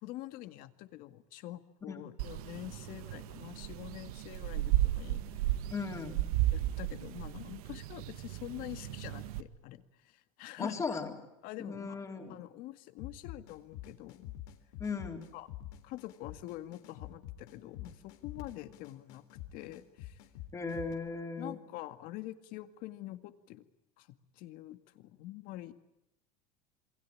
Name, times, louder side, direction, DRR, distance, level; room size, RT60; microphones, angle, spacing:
voice 1, 0.0-5.2 6.5-11.0 11.4-12.0 12.3-14.3 15.3-15.5 15.8-19.3 19.5-20.2 21.4-23.6 24.0-25.7, left 15 dB, 50° left, 11 dB, 2.0 m, -46 dB
sound 1, 2.2-9.4, right 15 dB, 85° right, 1.7 m, -34 dB
voice 2, 5.7-6.2 10.6-11.1 11.6-12.3 14.8-15.2 20.5-21.6, left 4 dB, 15° left, 5 dB, 3.7 m, -37 dB
sound 2, 13.0-20.9, left 13 dB, 70° left, 3.7 m, -47 dB
28.0 x 24.0 x 8.6 m, 0.83 s
cardioid pair, 160°, 18 cm